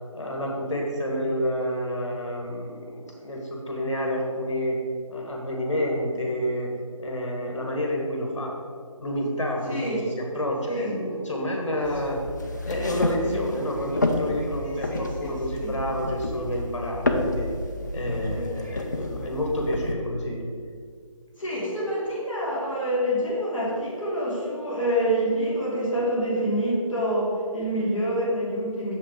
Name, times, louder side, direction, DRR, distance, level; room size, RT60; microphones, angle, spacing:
voice 1, 0.1-4.8 5.1-6.7 7.0-8.5 9.0-12.2 12.6-17.5 17.9-20.4, equal, 55° left, 0 dB, 1.7 m, -29 dB
voice 2, 9.7-10.1 10.7-11.0 14.9-15.3 15.6-15.7 18.3-18.5 21.4-28.9, equal, ahead, -18 dB, 1.2 m, -27 dB
sound 1, 11.8-19.9, left 2 dB, 30° left, 0.5 m, -30 dB
6.9 x 5.7 x 4.9 m, 2.1 s
figure-of-eight pair, 165°, 18 cm